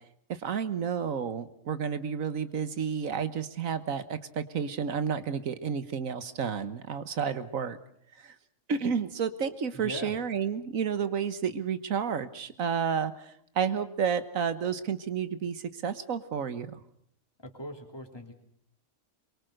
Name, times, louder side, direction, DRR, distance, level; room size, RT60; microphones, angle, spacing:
voice 1, 0.3-7.8 8.2-8.3 8.7-16.8, right 7 dB, 90° right, 12 dB, 1.6 m, -31 dB
voice 2, 9.7-10.1 17.4-18.3, equal, 20° left, 3 dB, 3.1 m, -40 dB
23.5 x 23.5 x 6.5 m, 0.66 s
omnidirectional pair, 1.4 m